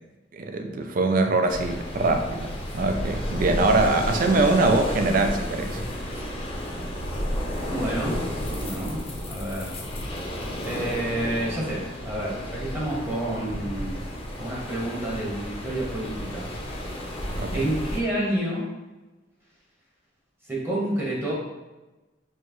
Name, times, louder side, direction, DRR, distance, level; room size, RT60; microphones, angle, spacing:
voice 1, 0.3-5.8 17.4-17.7, right 2 dB, 50° right, 6 dB, 0.4 m, -23 dB
sound 1, 1.5-18.0, equal, 30° left, 0.7 m, -32 dB
voice 2, 7.7-9.0 9.3-9.8 10.6-14.0 14.4-16.5 17.5-18.7 20.5-21.3, right 1 dB, 10° right, -5 dB, 1.1 m, -29 dB
4.5 x 3.0 x 3.1 m, 1.1 s
head